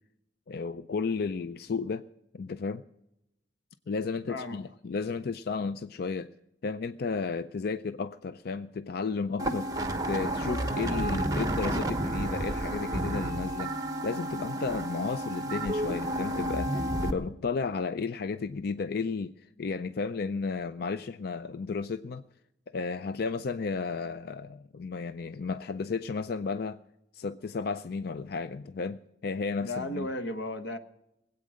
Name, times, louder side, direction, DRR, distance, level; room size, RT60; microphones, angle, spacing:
voice 1, 0.5-2.1 2.3-2.8 3.9-6.3 6.6-9.7 10.1-22.2 22.7-26.8 27.1-30.1, left 4 dB, 60° left, 0.4 m, -33 dB
voice 2, 4.3-4.6 29.6-30.8, left 1 dB, 90° left, 1.2 m, -34 dB
sound 1, 9.4-17.1, right 1 dB, 20° right, 1.1 m, -31 dB
20.5 x 8.5 x 6.3 m
head